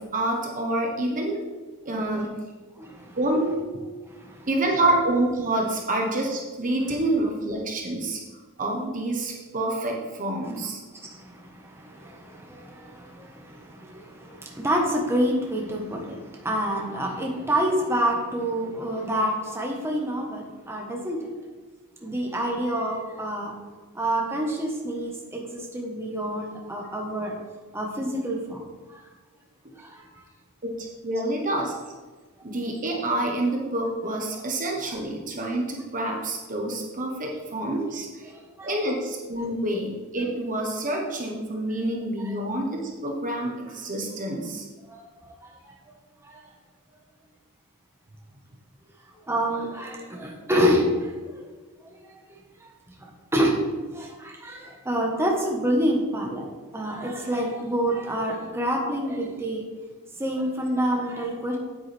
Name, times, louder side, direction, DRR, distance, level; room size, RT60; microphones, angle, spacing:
voice 1, 0.0-1.4 1.8-2.3 3.2-3.6 4.5-8.2 8.6-10.8 30.6-31.7 32.4-38.3 38.6-44.6, right 1 dB, 35° right, 0 dB, 1.2 m, -27 dB
voice 2, 2.8-3.2 4.1-4.5 11.0-21.2 22.0-23.5 23.9-27.4 27.7-28.6 28.9-29.0 29.8-30.1 38.6-38.7 42.2-42.3 44.9-45.0 45.7-45.8 46.2-46.4 49.3-51.1 52.0-52.2 53.0-53.5 53.9-59.6 60.2-61.6, equal, 10° right, -1 dB, 1.4 m, -27 dB
9.1 x 8.6 x 3.5 m, 1.3 s
head